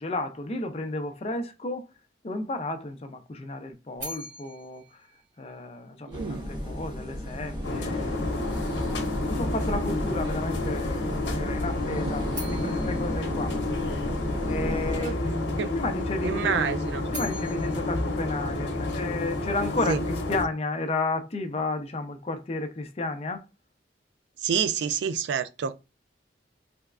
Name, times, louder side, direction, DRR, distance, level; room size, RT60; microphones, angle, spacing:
voice 1, 0.0-1.9 2.2-4.8 5.4-8.2 8.8-13.6 14.5-16.6 17.1-20.0 20.3-23.4, left 2 dB, 35° left, 0.4 m, -32 dB
sound 1, 4.0-6.1 12.3-14.5 16.8-19.2, equal, 45° right, 1.9 m, -43 dB
sound 2, 6.1-15.0, equal, 25° right, 0.9 m, -34 dB
voice 2, 6.1-6.5 12.0-12.1 15.0-15.2 15.6-15.8 16.2-17.1 19.9-20.0 24.4-25.7, right 7 dB, 70° right, 0.3 m, -28 dB
sound 3, 7.6-20.5, left 2 dB, 80° left, 0.8 m, -30 dB
3.4 x 3.0 x 2.4 m
head